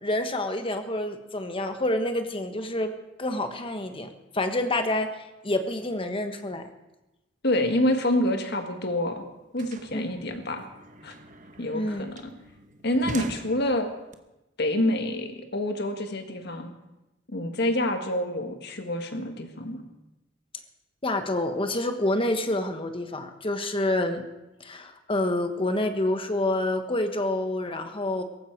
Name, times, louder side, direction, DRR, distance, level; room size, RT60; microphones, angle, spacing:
voice 1, 0.0-2.9 3.2-6.7 9.9-10.2 11.7-12.0 21.0-24.2 24.6-28.2, left 1 dB, 30° left, 7 dB, 1.3 m, -28 dB
voice 2, 7.4-9.3 9.5-10.7 11.0-11.1 11.6-12.3 12.8-13.9 14.6-16.7 17.3-19.8, left 1 dB, 60° left, 5 dB, 1.7 m, -27 dB
sound 1, 8.7-8.8 9.0-14.1, right 2 dB, 45° right, 1.0 m, -43 dB
18.0 x 15.0 x 4.7 m, 0.98 s
head